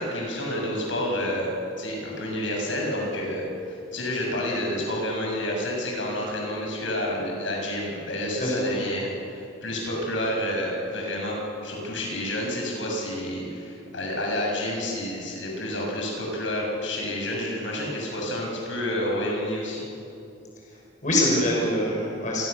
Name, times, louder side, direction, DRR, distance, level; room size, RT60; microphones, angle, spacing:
voice 1, 0.0-1.5 1.8-11.4 11.6-19.8, left 1 dB, 75° left, -1 dB, 7.1 m, -29 dB
voice 2, 8.4-8.8 20.7-20.8 21.0-22.5, left 1 dB, 40° left, -2 dB, 6.1 m, -24 dB
27.5 x 23.0 x 6.9 m, 2.7 s
head